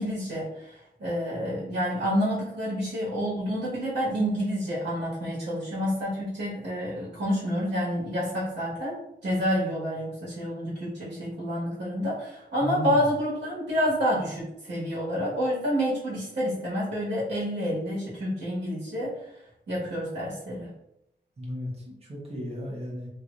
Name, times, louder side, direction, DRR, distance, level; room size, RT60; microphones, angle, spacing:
voice 1, 0.0-19.2 19.7-20.7, equal, 65° right, -7 dB, 1.5 m, -28 dB
voice 2, 12.6-13.0 21.4-23.1, equal, 35° right, -3 dB, 1.1 m, -34 dB
3.3 x 3.1 x 2.6 m, 0.83 s
wide cardioid pair, 140°, 19 cm